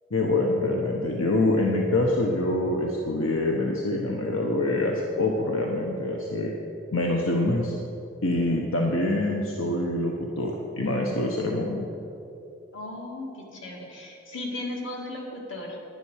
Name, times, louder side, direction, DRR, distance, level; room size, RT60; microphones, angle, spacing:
voice 1, 0.1-6.5 6.9-7.8 8.2-11.9, left 2 dB, 90° left, 0 dB, 1.1 m, -25 dB
voice 2, 12.7-15.8, left 2 dB, 70° left, -1 dB, 2.3 m, -36 dB
10.5 x 10.5 x 6.4 m, 2.8 s
head